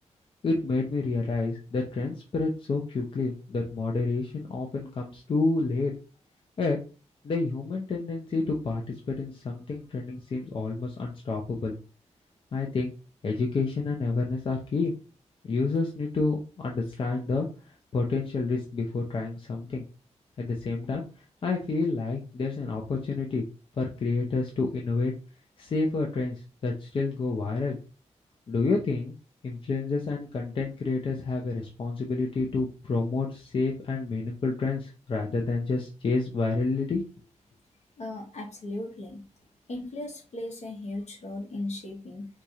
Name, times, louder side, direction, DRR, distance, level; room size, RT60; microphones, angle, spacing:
voice 1, 0.4-5.9 6.6-6.8 7.2-8.8 9.1-11.7 12.5-12.9 13.2-14.9 15.4-17.5 17.9-19.8 20.4-21.0 21.4-23.4 23.8-25.1 25.6-27.8 28.5-29.2 29.4-37.0, left 3 dB, 45° left, 0 dB, 0.6 m, -29 dB
voice 2, 38.0-39.2 39.7-42.3, left 2 dB, 70° left, 0 dB, 1.3 m, -37 dB
4.6 x 2.4 x 2.7 m, 0.34 s
wide cardioid pair, 155°, 12 cm